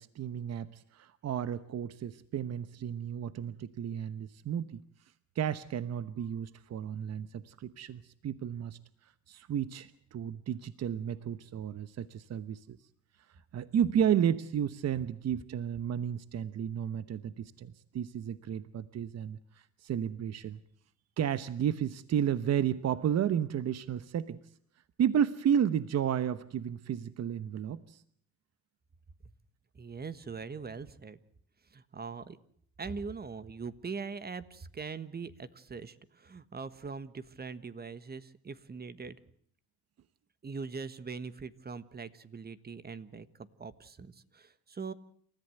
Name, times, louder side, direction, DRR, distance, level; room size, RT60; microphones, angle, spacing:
voice 1, 0.0-4.8 5.3-8.8 9.3-12.8 13.5-20.6 21.2-24.4 25.0-28.0, right 9 dB, 60° right, 14 dB, 1.0 m, -32 dB
voice 2, 29.7-31.2 31.7-32.4 32.8-39.2 40.4-44.9, right 5 dB, 30° right, 14 dB, 1.4 m, -42 dB
28.5 x 14.5 x 7.9 m, 0.63 s
cardioid pair, 90°, 30 cm